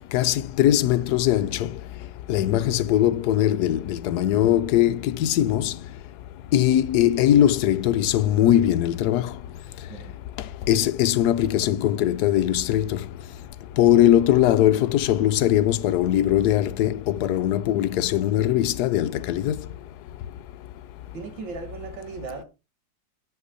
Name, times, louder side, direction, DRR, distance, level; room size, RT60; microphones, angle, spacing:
voice 1, 0.1-1.7 2.3-5.7 6.5-9.3 10.7-13.0 13.8-19.6, left 12 dB, 70° left, 1.0 m, -20 dB
voice 2, 21.1-22.4, right 4 dB, 80° right, 2.1 m, -37 dB
8.3 x 7.3 x 4.0 m
omnidirectional pair, 2.0 m